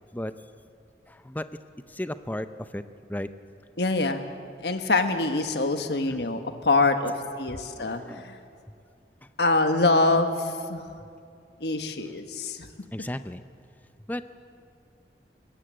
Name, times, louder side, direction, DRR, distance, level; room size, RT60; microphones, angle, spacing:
voice 1, 1.1-1.5 1.9-2.8 3.1-3.3 5.6-5.8 6.1-6.4 7.8-8.2 12.9-13.4 14.1-14.3, left 1 dB, 10° left, 11 dB, 0.6 m, -35 dB
voice 2, 3.8-4.3 4.6-8.4 9.4-10.8 11.6-12.7, left 2 dB, 75° left, 7 dB, 1.4 m, -25 dB
22.5 x 18.0 x 7.6 m, 2.4 s
head